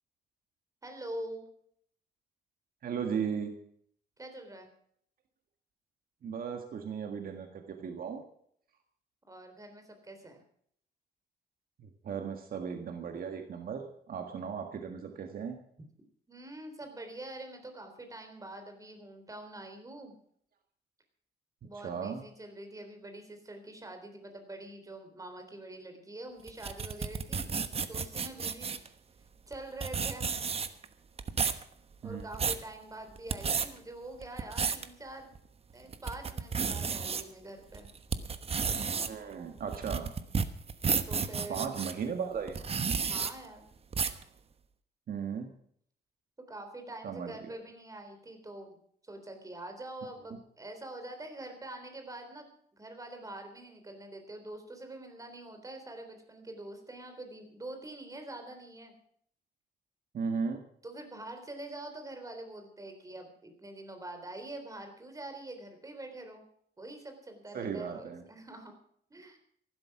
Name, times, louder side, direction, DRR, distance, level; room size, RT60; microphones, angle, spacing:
voice 1, 0.8-1.4 4.2-4.7 9.3-10.4 16.3-20.2 21.6-27.5 27.9-28.8 29.5-30.3 32.0-35.3 35.7-37.9 41.1-41.7 43.0-43.6 46.5-48.8 49.0-58.9 60.8-66.4 66.8-68.7 69.1-69.4, right 1 dB, 20° right, 6 dB, 3.7 m, -45 dB
voice 2, 2.8-3.5 6.2-8.2 11.8-15.6 21.6-22.2 32.0-32.2 39.0-40.1 41.5-42.6 45.1-45.5 47.0-47.5 60.1-60.6 67.5-68.2, right 6 dB, 55° right, 5 dB, 1.7 m, -36 dB
sound 1, 26.5-28.9 29.5-29.6 29.8-30.9 31.2-31.6 32.1-32.6 33.2-33.7 34.2-34.9 35.4-35.5 35.9-37.2 37.7-41.9 42.5-43.3 43.9-44.2, right 5 dB, 35° right, 1.1 m, -32 dB
15.0 x 12.5 x 6.0 m, 0.65 s
cardioid pair, 120°, 18 cm